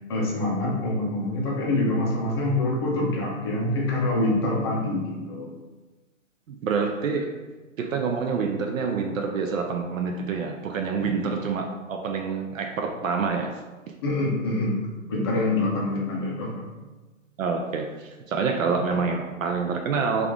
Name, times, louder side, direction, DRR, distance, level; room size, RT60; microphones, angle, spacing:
voice 1, 0.1-5.5 11.0-11.1 14.0-14.8 15.1-16.8, left 2 dB, 20° left, -3 dB, 0.5 m, -25 dB
voice 2, 6.5-7.4 7.8-13.6 17.4-20.3, right 5 dB, 80° right, 3 dB, 0.6 m, -27 dB
3.4 x 2.5 x 3.5 m, 1.2 s
hypercardioid pair, 150°, 40 cm